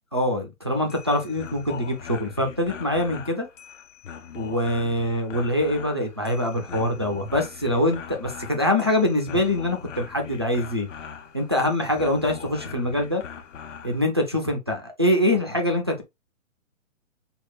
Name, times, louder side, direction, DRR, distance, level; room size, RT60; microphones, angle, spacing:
voice 1, 0.1-3.5 4.4-10.9 11.3-13.2 13.8-16.0, left 1 dB, 20° right, 0.4 m, -24 dB
sound 1, 0.7-14.0, left 7 dB, 65° left, 1.0 m, -41 dB
4.8 x 2.4 x 3.1 m
hypercardioid pair, 160°, 40 cm